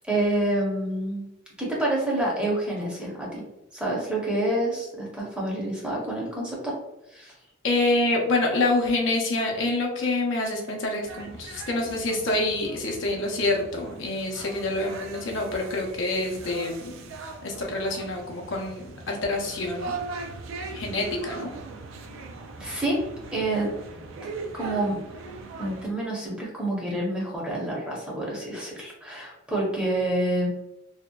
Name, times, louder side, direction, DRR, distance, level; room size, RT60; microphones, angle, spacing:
voice 1, 0.1-1.2 1.6-3.4 3.7-6.7 7.1-7.3 22.6-23.0 23.3-23.7 24.2-25.0 25.6-30.5, right 1 dB, 5° right, -4 dB, 0.7 m, -28 dB
voice 2, 7.6-17.1 17.4-20.0 20.7-21.5, left 2 dB, 70° left, 0 dB, 0.5 m, -27 dB
sound 1, 11.1-25.9, right 3 dB, 75° right, 0.4 m, -40 dB
2.6 x 2.1 x 2.2 m, 0.91 s
head